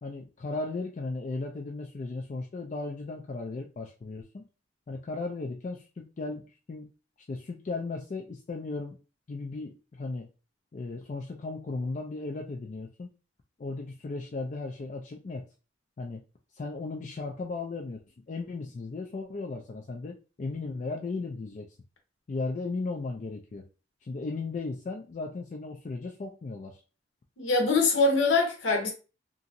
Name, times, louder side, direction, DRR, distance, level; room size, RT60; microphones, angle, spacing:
voice 1, 0.0-4.4 4.9-6.9 7.3-9.0 9.3-10.3 10.7-13.1 13.6-15.4 16.0-16.2 16.5-18.0 18.3-21.7 22.3-23.7 24.0-26.8, left 3 dB, 35° left, 0.3 m, -36 dB
voice 2, 27.4-28.9, left 3 dB, 70° left, 0.8 m, -23 dB
2.9 x 2.5 x 2.6 m
head